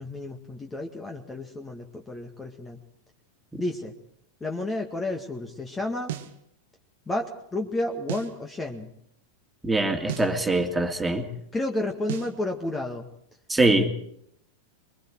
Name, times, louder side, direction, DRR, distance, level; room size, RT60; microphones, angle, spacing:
voice 1, 0.0-2.8 3.6-3.9 4.4-6.2 7.1-8.9 11.5-13.1, left 2 dB, 15° left, 3 dB, 2.0 m, -31 dB
sound 1, 6.1-6.4 8.1-8.4 10.1-10.4 12.1-12.4, right 12 dB, 55° right, 1.5 m, -34 dB
voice 2, 9.6-11.3 13.5-13.9, right 2 dB, 10° right, 4 dB, 2.7 m, -23 dB
25.0 x 23.5 x 4.7 m, 0.69 s
figure-of-eight pair, 90°, 0 cm